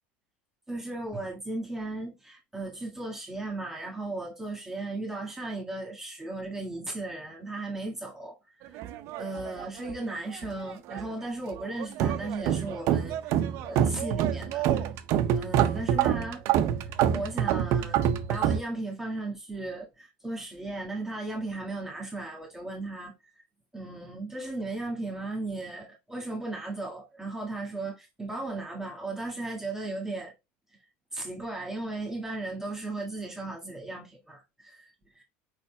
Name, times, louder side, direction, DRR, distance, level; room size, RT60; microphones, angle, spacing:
voice 1, 0.7-8.4 8.7-8.9 9.2-13.4 13.6-14.8 15.3-16.4 17.1-23.1 23.7-30.3 31.1-35.2, right 2 dB, 10° right, 1.8 m, -36 dB
sound 1, 8.8-10.1 10.3-11.1 11.5-18.6, right 10 dB, 60° right, 0.6 m, -27 dB
4.9 x 4.2 x 2.2 m
supercardioid pair, 105°, 5 cm